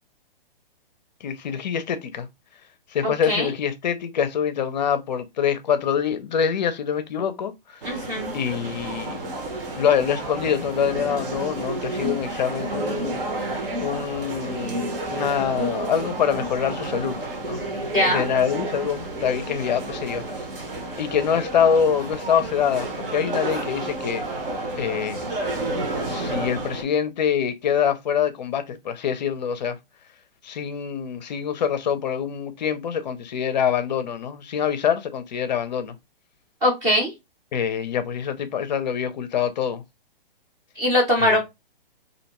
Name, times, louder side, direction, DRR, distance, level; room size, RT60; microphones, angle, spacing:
voice 1, 1.2-2.3 2.9-7.8 8.3-9.3 9.8-13.2 13.8-17.2 17.4-20.2 21.0-24.2 24.8-25.2 26.0-29.8 30.4-35.9 37.5-39.8 41.2-41.4, left 8 dB, 50° left, 0.4 m, -25 dB
voice 2, 3.0-3.5 7.8-8.3 17.9-18.3 36.6-37.1 40.8-41.4, left 1 dB, 15° right, 0.5 m, -21 dB
sound 1, 7.8-26.8, right 2 dB, 70° right, 1.0 m, -30 dB
2.5 x 2.1 x 2.8 m
hypercardioid pair, 145°, 29 cm